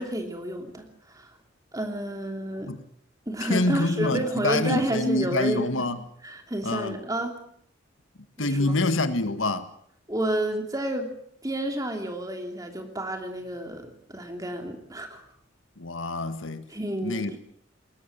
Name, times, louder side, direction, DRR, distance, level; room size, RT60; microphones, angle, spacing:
voice 1, 0.0-1.4 1.7-2.7 3.3-5.7 6.2-7.4 8.4-8.8 10.1-11.1 11.4-15.2 16.7-17.4, right 1 dB, 20° right, 2.9 m, -30 dB
voice 2, 3.4-6.0 6.6-7.0 8.4-9.7 15.8-16.7 17.0-17.4, left 2 dB, 90° left, 1.8 m, -26 dB
21.0 x 19.0 x 7.4 m
head